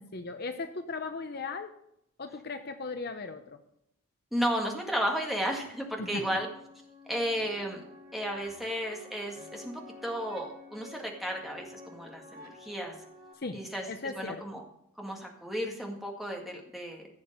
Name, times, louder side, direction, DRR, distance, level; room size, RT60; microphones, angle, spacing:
voice 1, 0.0-1.8 2.2-3.6 6.0-6.3 13.3-13.6 13.9-14.4, left 4 dB, 45° left, 8 dB, 0.7 m, -37 dB
voice 2, 4.3-6.5 7.1-7.8 8.1-13.0 13.5-13.9 14.2-14.6 15.0-17.1, equal, ahead, 0 dB, 1.9 m, -33 dB
sound 1, 5.3-13.3, left 2 dB, 50° right, 5.3 m, -50 dB
15.5 x 6.8 x 5.3 m, 0.76 s
head